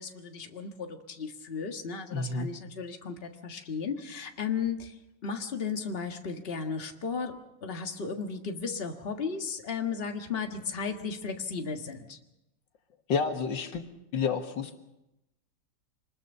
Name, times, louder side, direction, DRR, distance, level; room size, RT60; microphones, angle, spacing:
voice 1, 0.0-12.2, left 5 dB, 35° left, 4 dB, 1.7 m, -35 dB
voice 2, 2.1-2.5 13.1-13.8 14.1-14.8, left 5 dB, 90° left, 6 dB, 2.2 m, -29 dB
26.0 x 20.0 x 5.5 m, 0.90 s
omnidirectional pair, 1.9 m